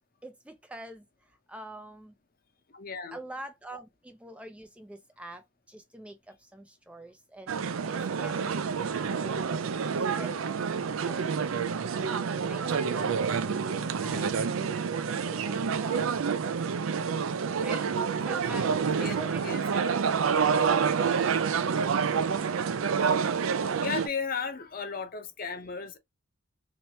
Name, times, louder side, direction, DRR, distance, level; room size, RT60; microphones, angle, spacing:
voice 1, 0.2-1.0 1.5-2.1 3.1-5.4 5.7-7.5 7.9-10.5 11.0-11.5 12.5-14.3 15.1-16.3 17.6-17.9 18.3-18.7 19.0-21.4, right 1 dB, 5° right, 0.3 m, -45 dB
voice 2, 2.7-3.2 14.0-14.5 18.9-19.6 23.8-26.0, left 5 dB, 45° left, 0.7 m, -35 dB
sound 1, 7.5-24.1, right 6 dB, 85° right, 0.4 m, -28 dB
3.1 x 3.0 x 2.7 m
head